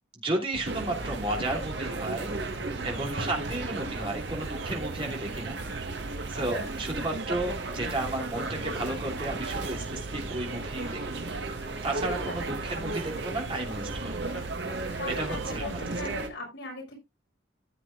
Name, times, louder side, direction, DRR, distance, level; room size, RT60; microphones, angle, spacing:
voice 1, 0.2-2.3 2.8-5.6 6.3-11.0 11.8-14.4 15.1-15.8 16.0-16.1, right 1 dB, 30° right, -1 dB, 3.0 m, -33 dB
sound 1, 0.5-16.2, right 4 dB, 85° right, 0.6 m, -42 dB
sound 2, 0.6-16.3, right 2 dB, 60° right, 1.6 m, -35 dB
Race car auto racing / Accelerating revving vroom, 7.8-13.1, right 1 dB, 5° right, 4.8 m, -54 dB
voice 2, 15.0-17.0, left 2 dB, 75° left, 0 dB, 6.0 m, -39 dB
14.5 x 7.7 x 2.5 m, 0.23 s
head